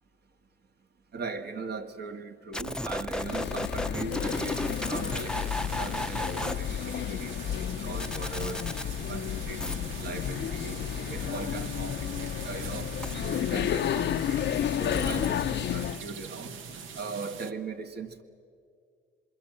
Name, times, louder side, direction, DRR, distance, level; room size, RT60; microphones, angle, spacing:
voice 1, 1.1-8.6 9.1-10.8 11.1-12.9 13.2-16.5 17.0-18.2, right 4 dB, 55° right, 1.9 m, -39 dB
sound 1, 2.5-6.5 8.0-8.9 9.6-9.7 13.0-13.1 14.9-15.3, left 1 dB, 5° left, 0.7 m, -33 dB
sound 2, 3.1-16.1, left 11 dB, 65° left, 0.6 m, -32 dB
sound 3, 4.2-17.5, right 7 dB, 80° right, 1.1 m, -43 dB
26.5 x 22.5 x 7.6 m
cardioid pair, 90°, 20 cm